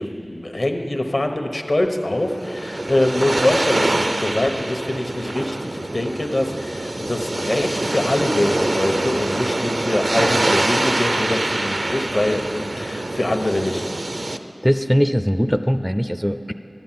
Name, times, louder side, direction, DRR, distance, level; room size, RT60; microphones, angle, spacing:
voice 1, 0.0-13.8, left 1 dB, 60° left, 5 dB, 1.1 m, -24 dB
sound 1, 2.1-14.4, right 2 dB, 65° right, 0.5 m, -24 dB
voice 2, 14.6-16.5, equal, 5° right, 9 dB, 0.4 m, -20 dB
13.0 x 10.5 x 7.6 m, 2.9 s
wide cardioid pair, 40°, 0 cm